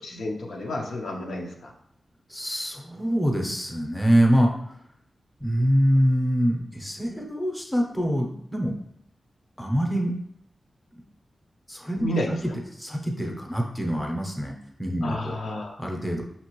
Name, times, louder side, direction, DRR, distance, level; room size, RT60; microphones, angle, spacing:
voice 1, 0.0-1.7 12.0-12.4 15.0-15.8, left 1 dB, 80° left, 0 dB, 0.7 m, -31 dB
voice 2, 2.3-4.5 5.4-8.8 9.6-10.1 11.7-12.4 12.8-14.5 14.8-15.3 15.8-16.2, equal, 5° left, 0 dB, 0.7 m, -24 dB
5.8 x 2.9 x 3.0 m, 0.72 s
wide cardioid pair, 125°, 0 cm